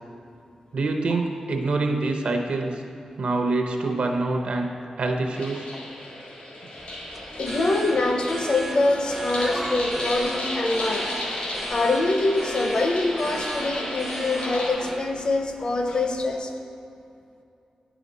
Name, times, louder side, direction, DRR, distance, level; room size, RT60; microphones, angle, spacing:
voice 1, 0.7-2.8 3.2-4.7 5.0-5.7, right 3 dB, 70° right, 3 dB, 0.7 m, -25 dB
sound 1, 5.3-14.7, left 1 dB, 85° left, 1.7 m, -34 dB
sound 2, 6.8-16.4, right 1 dB, 10° right, 0.4 m, -36 dB
voice 2, 7.4-11.1 11.7-16.5, left 2 dB, 45° left, 4 dB, 0.6 m, -24 dB
9.6 x 4.9 x 4.1 m, 2.6 s
wide cardioid pair, 165°, 2 cm